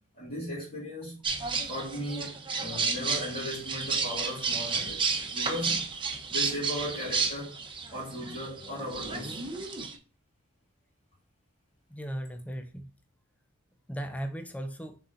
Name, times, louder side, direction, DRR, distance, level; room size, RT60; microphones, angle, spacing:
voice 1, 0.1-1.3 1.6-5.9 6.3-7.6 7.9-9.4, equal, 35° left, 2.7 m, -37 dB
sound 1, 1.2-9.9, right 5 dB, 25° right, 1.1 m, -32 dB
voice 2, 11.9-12.9 13.9-15.0, right 1 dB, 5° left, 0.5 m, -37 dB
6.9 x 4.1 x 4.0 m
head